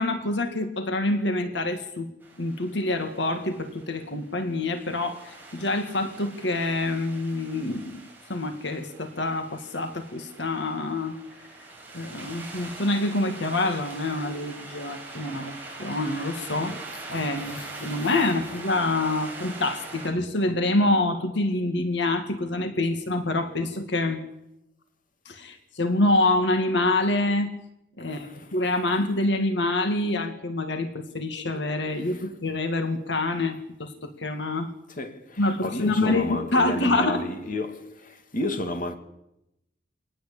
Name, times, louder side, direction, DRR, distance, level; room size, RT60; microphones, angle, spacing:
voice 1, 0.0-2.1 2.4-8.0 8.3-11.2 11.9-15.5 15.8-16.8 17.1-24.2 25.3-27.5 28.0-28.3 28.5-34.7 35.4-37.2, left 2 dB, 65° left, 2.4 m, -26 dB
sound 1, 2.2-20.1, right 3 dB, 10° right, 7.4 m, -43 dB
voice 2, 17.5-18.3 28.0-28.6 32.0-32.3 34.9-39.0, left 1 dB, 45° left, 2.7 m, -33 dB
24.5 x 19.0 x 8.7 m
head